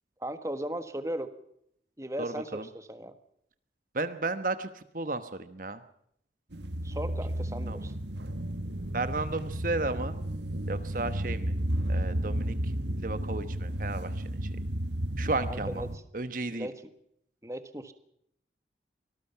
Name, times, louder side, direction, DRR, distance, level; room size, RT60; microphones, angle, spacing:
voice 1, 0.2-1.3 2.0-3.2 6.8-7.9 15.4-15.9 16.5-16.7 17.4-17.9, right 1 dB, 15° right, 10 dB, 1.5 m, -37 dB
voice 2, 2.2-2.6 3.9-5.8 7.7-7.8 8.9-10.2 10.7-11.5 11.9-12.7 13.0-14.5 15.2-15.8 16.1-16.7, right 3 dB, 45° right, 11 dB, 1.1 m, -33 dB
sound 1, 6.5-16.0, right 1 dB, 75° right, 1.6 m, -33 dB
24.5 x 19.5 x 5.8 m, 0.72 s
head